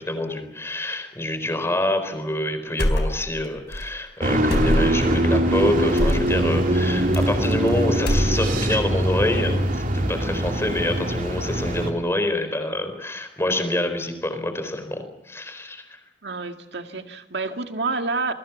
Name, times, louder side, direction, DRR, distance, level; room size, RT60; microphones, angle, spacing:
voice 1, 0.0-15.9, left 1 dB, 15° left, 8 dB, 4.3 m, -26 dB
sound 1, 2.8-3.5 3.7-3.9 4.5-5.1 6.0-6.3 7.1-7.7 7.9-8.7, equal, 75° left, 4.0 m, -23 dB
sound 2, 4.2-11.9, right 1 dB, 50° right, 3.0 m, -22 dB
voice 2, 16.2-18.3, right 3 dB, 70° right, 6 dB, 2.1 m, -29 dB
29.5 x 21.0 x 7.2 m, 0.83 s
head